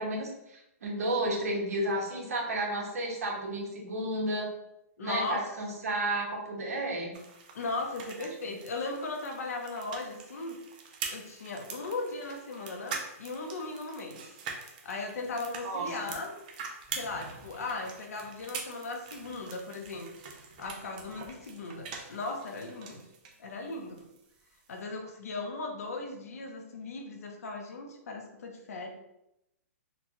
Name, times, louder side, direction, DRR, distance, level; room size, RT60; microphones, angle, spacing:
voice 1, 0.0-4.5 5.0-7.1 8.2-8.3 15.6-16.1, right 1 dB, 70° right, -1 dB, 1.2 m, -32 dB
voice 2, 5.0-5.5 7.5-10.6 11.1-14.2 14.8-16.4 16.9-20.1 20.6-23.0 23.4-24.0 24.7-28.9, left 3 dB, 70° left, 3 dB, 0.8 m, -37 dB
sound 1, 7.1-23.4 23.7-24.8, right 5 dB, 30° right, 0.4 m, -44 dB
3.9 x 2.3 x 2.9 m, 0.85 s
hypercardioid pair, 170°, 8 cm